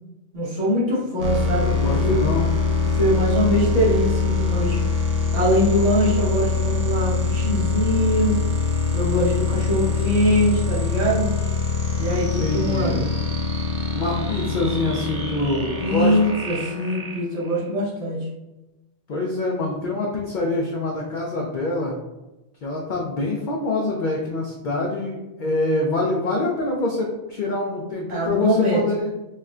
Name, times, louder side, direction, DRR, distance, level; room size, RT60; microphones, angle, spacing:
voice 1, 0.3-2.3 2.9-4.8 5.3-8.4 8.9-11.3 12.0-13.1 15.8-18.3 28.1-28.8, equal, 85° right, -8 dB, 1.6 m, -22 dB
sound 1, 1.2-17.7, left 4 dB, 50° right, 0.4 m, -24 dB
voice 2, 1.7-2.4 12.4-13.0 13.9-16.2 19.1-21.9 22.6-29.1, left 2 dB, 55° left, -2 dB, 0.5 m, -25 dB
4.2 x 2.1 x 2.4 m, 1.0 s
omnidirectional pair, 1.2 m